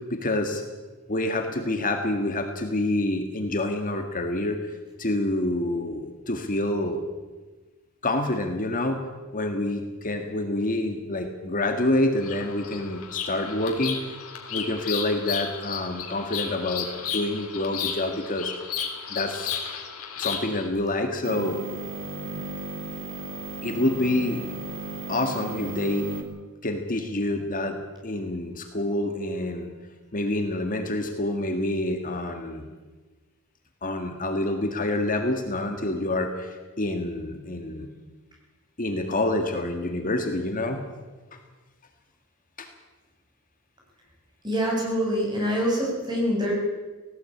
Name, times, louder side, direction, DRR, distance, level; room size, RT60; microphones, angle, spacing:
voice 1, 0.1-0.6 1.1-4.6 5.0-7.0 8.0-9.0 9.3-14.0 14.5-18.5 19.1-19.5 20.2-21.6 23.6-24.4 25.1-26.1 26.6-29.7 30.1-32.7 33.8-37.9 38.8-40.8 42.6-42.7, left 1 dB, 40° left, 5 dB, 1.8 m, -27 dB
Bird vocalization bird call bird song, 12.2-20.7, left 7 dB, 75° left, 3.2 m, -34 dB
sound 1, 21.2-26.2, right 2 dB, 60° right, 2.5 m, -35 dB
voice 2, 44.4-46.5, equal, 20° right, -2 dB, 7.3 m, -25 dB
18.0 x 17.0 x 8.6 m, 1.3 s
head